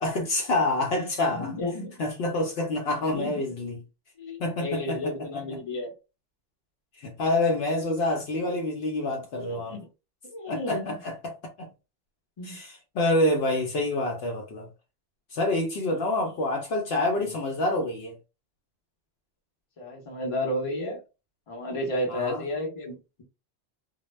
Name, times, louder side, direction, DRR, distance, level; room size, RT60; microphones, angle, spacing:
voice 1, 0.0-1.5 2.0-3.8 4.4-5.1 5.5-5.6 7.0-9.8 10.5-11.7 12.4-14.7 15.3-18.2 22.1-22.4, left 2 dB, 65° left, 0.8 m, -27 dB
voice 2, 1.3-2.0 3.1-3.3 4.2-5.9 9.2-9.8 10.3-11.0 12.4-12.6 19.8-21.0 21.5-23.2, left 1 dB, 35° left, 0.7 m, -32 dB
2.1 x 2.1 x 3.1 m
omnidirectional pair, 1.1 m